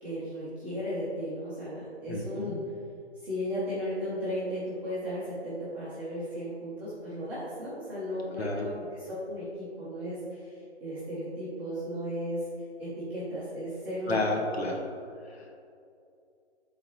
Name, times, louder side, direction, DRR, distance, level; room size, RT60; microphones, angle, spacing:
voice 1, 0.0-2.6 3.2-12.5 12.8-14.2, equal, 5° right, -13 dB, 0.8 m, -35 dB
voice 2, 2.1-2.6 8.4-8.7 14.1-14.8 15.2-15.5, left 2 dB, 65° left, 1 dB, 1.3 m, -31 dB
10.5 x 3.9 x 3.1 m, 2.5 s
hypercardioid pair, 160°, 34 cm